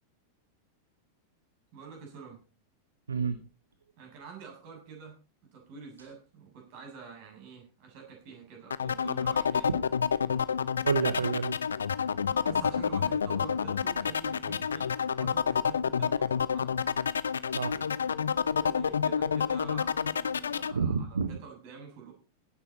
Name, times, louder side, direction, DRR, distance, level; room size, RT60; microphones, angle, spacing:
voice 1, 1.7-2.4 4.0-5.2 5.5-9.7 12.3-16.7 18.5-22.1, right 5 dB, 45° right, 2 dB, 7.0 m, -47 dB
voice 2, 3.1-3.5 10.8-11.5 17.5-17.9 20.7-21.4, right 5 dB, 70° right, 13 dB, 1.0 m, -29 dB
sound 1, 8.7-20.7, left 7 dB, 70° left, 0.6 m, -29 dB
17.0 x 10.0 x 4.2 m, 0.32 s
figure-of-eight pair, 90°, 0 cm